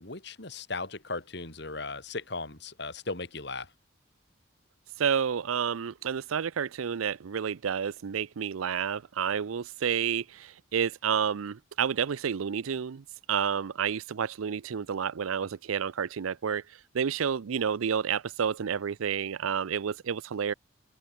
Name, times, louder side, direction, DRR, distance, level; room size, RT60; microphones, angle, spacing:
voice 1, 0.0-3.7, left 3 dB, 55° left, 2.3 m, -37 dB
voice 2, 5.0-16.6 16.9-20.5, right 7 dB, 90° right, 0.5 m, -30 dB
open air
head